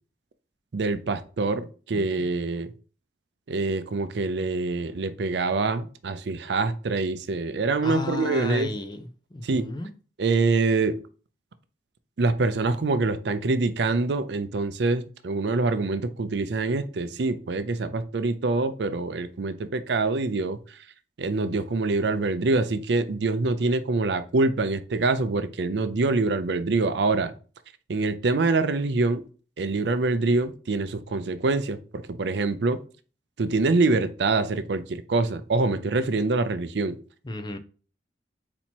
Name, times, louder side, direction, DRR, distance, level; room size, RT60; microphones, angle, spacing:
voice 1, 0.7-2.7 3.5-8.7 9.4-9.7 10.2-11.0 12.2-20.8 21.2-27.3 27.9-29.2 29.6-32.8 33.4-37.0, right 3 dB, 75° right, 11 dB, 0.5 m, -25 dB
voice 2, 1.9-2.2 7.8-9.9 37.2-37.6, left 2 dB, 25° left, 8 dB, 0.4 m, -33 dB
4.2 x 2.9 x 4.3 m, 0.37 s
head